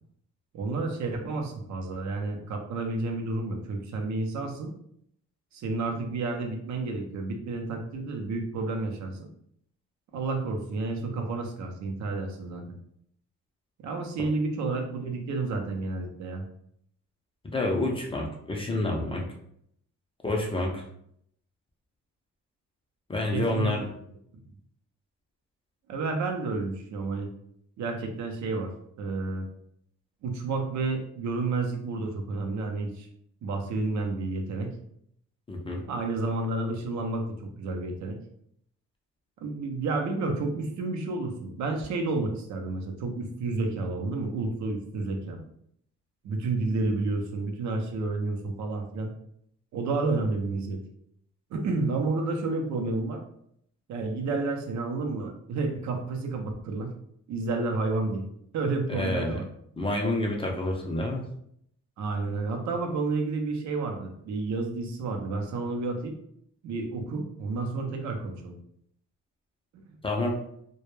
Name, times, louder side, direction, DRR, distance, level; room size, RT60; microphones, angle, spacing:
voice 1, 0.5-4.7 5.5-9.3 10.1-12.6 13.8-16.5 23.3-23.7 25.9-27.3 27.8-28.7 29.0-29.4 30.2-33.1 33.4-34.7 35.9-38.2 39.4-45.4 46.2-49.1 49.7-50.8 51.5-53.2 53.9-56.9 57.3-58.3 58.5-59.4 62.0-66.2 66.6-68.6 69.8-70.0, right 3 dB, 70° right, 3 dB, 0.6 m, -30 dB
voice 2, 17.4-19.3 20.2-20.8 23.1-23.9 35.5-35.8 58.9-59.4 59.8-61.2 70.0-70.4, left 2 dB, 20° left, 0 dB, 0.4 m, -28 dB
2.1 x 2.1 x 3.0 m, 0.70 s
cardioid pair, 90°, 30 cm